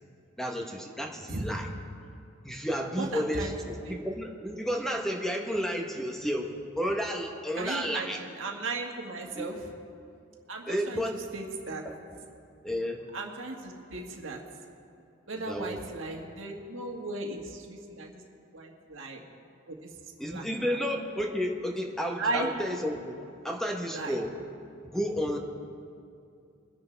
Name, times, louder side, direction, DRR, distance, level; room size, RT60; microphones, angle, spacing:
voice 1, 0.4-1.7 2.4-8.2 9.3-9.5 10.6-11.2 11.8-12.2 12.6-13.1 15.3-15.8 20.2-24.4 24.8-25.4, equal, ahead, 1 dB, 1.0 m, -32 dB
voice 2, 3.0-3.5 3.8-4.0 7.6-9.6 10.5-11.0 11.3-11.8 13.1-14.4 15.3-18.2 18.5-19.2 19.7-20.5 22.2-22.5 23.9-24.2, right 2 dB, 85° right, 1 dB, 1.7 m, -36 dB
23.0 x 10.5 x 3.4 m, 2.5 s
head